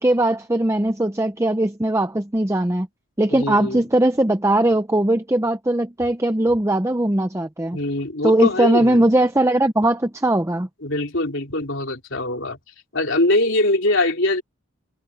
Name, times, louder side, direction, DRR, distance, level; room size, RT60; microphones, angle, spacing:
voice 1, 0.0-2.9 3.2-7.8 8.2-10.7, right 1 dB, 15° right, 0.6 m, -19 dB
voice 2, 3.3-3.8 7.7-9.0 10.8-12.6 12.9-14.4, left 1 dB, 60° left, 3.6 m, -22 dB
head